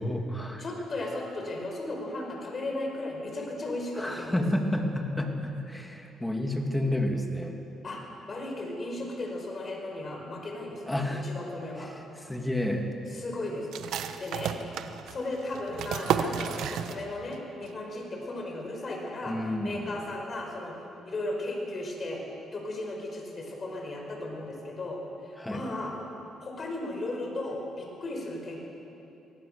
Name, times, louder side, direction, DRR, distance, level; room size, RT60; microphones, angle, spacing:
voice 1, 0.0-0.6 4.0-7.6 10.9-11.3 11.8-12.9 19.3-20.0 25.4-25.6, left 1 dB, 10° left, 3 dB, 2.6 m, -30 dB
voice 2, 0.6-4.4 7.8-8.0 8.3-11.9 13.1-13.7 14.2-14.5 15.1-19.4 19.6-20.7 21.0-22.2 22.5-26.0 26.4-28.6, left 2 dB, 40° left, 1 dB, 5.2 m, -35 dB
sound 1, 13.7-17.4 17.6-17.7 18.2-18.6, right 8 dB, 75° right, 1.1 m, -32 dB
23.0 x 17.5 x 6.9 m, 2.9 s
cardioid pair, 95°, 0 cm